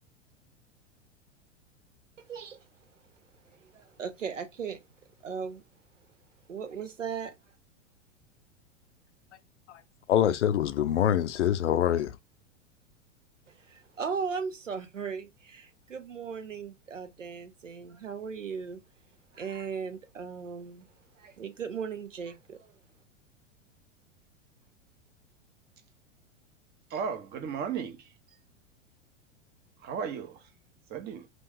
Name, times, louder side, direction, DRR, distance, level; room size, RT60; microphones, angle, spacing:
voice 1, 2.2-2.6 3.6-4.8 5.2-5.6 6.5-7.3 13.5-18.8 19.3-20.9 21.2-22.8, right 6 dB, 85° right, 0.7 m, -37 dB
voice 2, 10.1-12.1, left 10 dB, 70° left, 0.5 m, -25 dB
voice 3, 26.9-28.1 29.8-30.5 30.9-31.3, right 7 dB, 25° right, 0.7 m, -35 dB
3.0 x 2.5 x 3.4 m
figure-of-eight pair, 95°, 37 cm